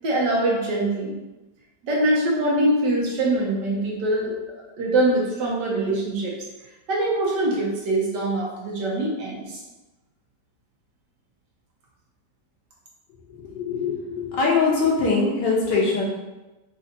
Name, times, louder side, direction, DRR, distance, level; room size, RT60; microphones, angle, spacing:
voice 1, 0.0-1.2 1.8-4.4 4.8-6.3 6.9-9.6, right 1 dB, 70° right, -3 dB, 1.7 m, -23 dB
voice 2, 13.3-16.0, left 4 dB, 75° left, -4 dB, 1.7 m, -22 dB
4.8 x 2.6 x 4.2 m, 1.1 s
omnidirectional pair, 1.9 m